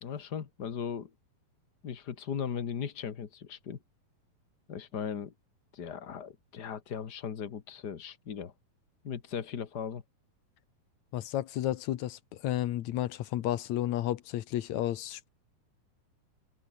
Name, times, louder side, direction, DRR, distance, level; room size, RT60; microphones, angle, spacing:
voice 1, 0.0-1.1 1.8-3.8 4.7-5.3 5.7-8.5 9.0-10.0, left 7 dB, 50° left, 1.2 m, -37 dB
voice 2, 11.1-15.3, left 13 dB, 70° left, 1.9 m, -32 dB
open air
omnidirectional pair, 4.2 m